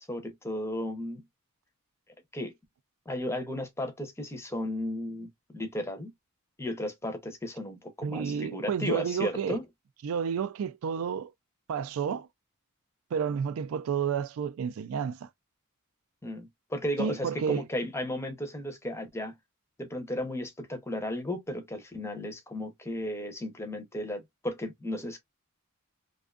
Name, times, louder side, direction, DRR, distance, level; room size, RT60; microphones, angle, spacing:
voice 1, 0.1-1.2 2.3-2.5 3.1-6.1 6.6-9.6 16.2-19.3 19.8-25.2, left 1 dB, 10° left, 0.5 m, -34 dB
voice 2, 8.0-9.6 10.0-11.3 11.7-12.3 13.1-15.3 17.0-17.6, right 7 dB, 70° right, 0.3 m, -30 dB
2.5 x 2.3 x 2.3 m
head